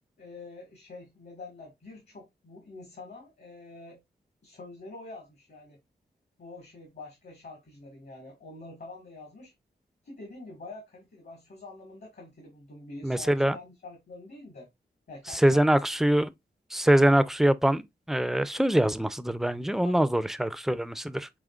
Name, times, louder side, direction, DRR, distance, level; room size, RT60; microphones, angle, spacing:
voice 1, 0.2-4.0 4.4-5.8 6.4-9.5 10.0-14.7 15.1-15.6 16.8-17.3 19.8-19.9, left 3 dB, 65° left, 1.5 m, -46 dB
voice 2, 13.0-13.6 15.3-16.3 16.7-17.8 18.1-21.3, right 1 dB, ahead, 0.4 m, -23 dB
5.0 x 3.6 x 2.3 m
wide cardioid pair, 75°, 18 cm